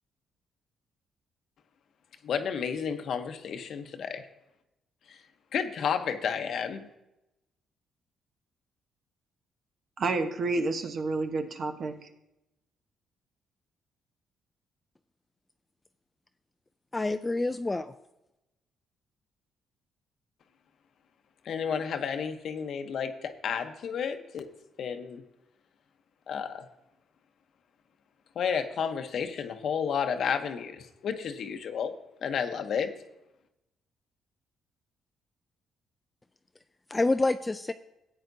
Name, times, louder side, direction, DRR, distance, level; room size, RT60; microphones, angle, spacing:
voice 1, 2.2-4.2 5.1-5.2 5.5-6.9 21.4-24.5 24.8-25.2 26.3-26.6 28.4-31.9 32.2-32.9, left 7 dB, 65° left, 8 dB, 0.9 m, -31 dB
voice 2, 10.0-12.1, right 3 dB, 55° right, 6 dB, 1.0 m, -30 dB
voice 3, 16.9-17.9 36.9-37.7, left 2 dB, 20° left, 10 dB, 0.3 m, -27 dB
13.5 x 8.8 x 2.7 m, 0.90 s
cardioid pair, 90°, 0 cm